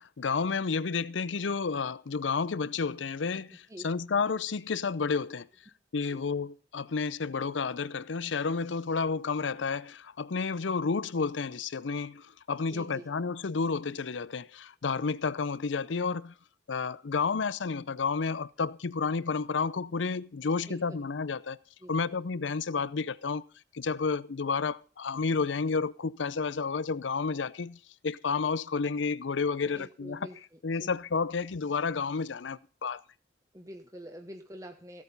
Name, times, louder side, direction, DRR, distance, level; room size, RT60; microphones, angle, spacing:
voice 1, 0.0-5.5 5.9-16.3 16.7-21.6 21.9-23.4 23.7-30.3 30.6-33.0, left 5 dB, 80° left, 0.6 m, -31 dB
voice 2, 12.7-13.1 20.6-20.8 21.8-21.9 29.6-30.4 30.8-30.9 33.5-35.0, equal, 20° right, 1.1 m, -46 dB
16.0 x 8.4 x 5.4 m
head